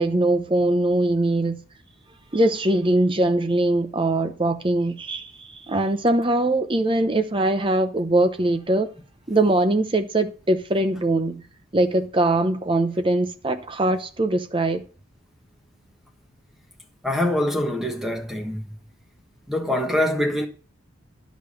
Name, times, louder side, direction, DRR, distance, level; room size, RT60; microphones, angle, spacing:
voice 1, 0.0-1.6 2.3-8.9 9.3-11.4 11.7-14.8, right 2 dB, 25° right, 0.8 m, -22 dB
voice 2, 17.0-18.6 19.5-20.5, left 1 dB, ahead, 1.4 m, -24 dB
11.0 x 5.2 x 6.9 m
head